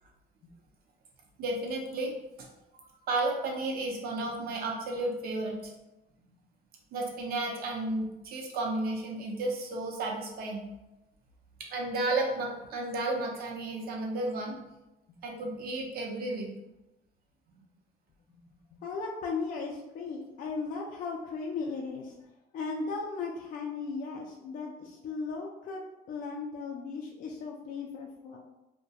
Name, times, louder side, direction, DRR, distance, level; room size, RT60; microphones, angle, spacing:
voice 1, 1.4-2.5 2.7-5.7 6.9-10.6 11.6-14.6 15.2-16.5 17.5-17.7, right 2 dB, 65° right, 0 dB, 0.6 m, -33 dB
voice 2, 18.7-22.2 22.5-25.8 26.1-28.4, left 4 dB, 55° left, -1 dB, 0.4 m, -36 dB
2.2 x 2.1 x 2.7 m, 0.97 s
cardioid pair, 110°, 17 cm